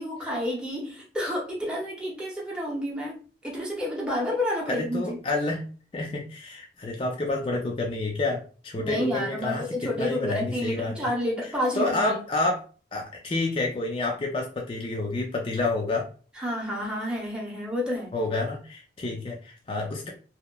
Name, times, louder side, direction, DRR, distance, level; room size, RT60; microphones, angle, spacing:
voice 1, 0.0-3.1 3.4-5.2 8.8-12.1 16.4-18.1, left 1 dB, 5° right, -4 dB, 0.7 m, -30 dB
voice 2, 4.7-5.6 5.9-11.0 11.7-12.6 12.9-16.1 18.1-20.1, left 2 dB, 30° left, 0 dB, 0.4 m, -29 dB
2.8 x 2.1 x 2.2 m, 0.38 s
head